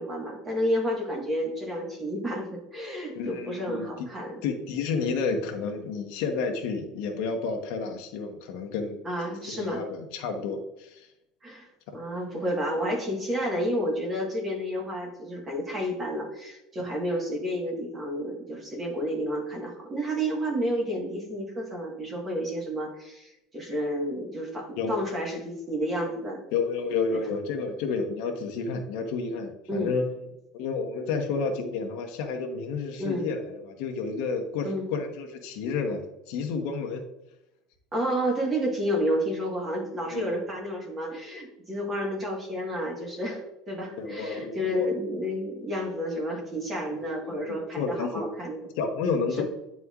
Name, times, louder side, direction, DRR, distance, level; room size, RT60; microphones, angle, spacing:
voice 1, 0.0-4.4 9.0-9.8 11.4-26.4 27.1-27.2 29.7-29.9 33.0-33.3 34.6-34.9 37.9-48.6, equal, 15° right, -1 dB, 1.4 m, -30 dB
voice 2, 3.1-4.1 4.4-9.0 9.5-11.1 11.9-12.0 24.8-25.0 26.5-30.2 30.5-36.0 36.3-37.0 40.0-40.4 44.0-44.9 47.2-48.3 48.8-49.4, left 4 dB, 65° left, 3 dB, 0.9 m, -30 dB
9.5 x 4.1 x 2.4 m, 0.89 s
cardioid pair, 170°, 0 cm